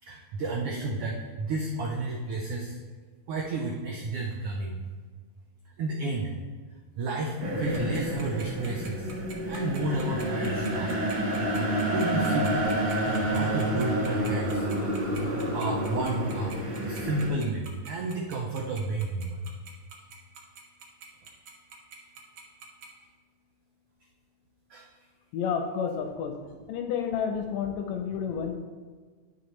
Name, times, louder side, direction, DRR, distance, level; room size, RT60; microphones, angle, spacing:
voice 1, 0.0-2.8 3.3-4.8 5.8-6.4 6.7-9.1 9.5-11.0 11.6-12.7 13.0-14.7 15.3-16.6 16.8-19.5 24.7-25.1, right 2 dB, 85° right, 0 dB, 1.2 m, -32 dB
sound 1, 7.4-17.3, right 1 dB, 40° right, 1.5 m, -29 dB
Tick-tock, 7.7-22.9, right 6 dB, 65° right, 1.6 m, -45 dB
voice 2, 25.3-26.4 26.7-28.6, left 7 dB, 80° left, 5 dB, 1.7 m, -30 dB
11.0 x 5.0 x 3.2 m, 1.5 s
omnidirectional pair, 3.5 m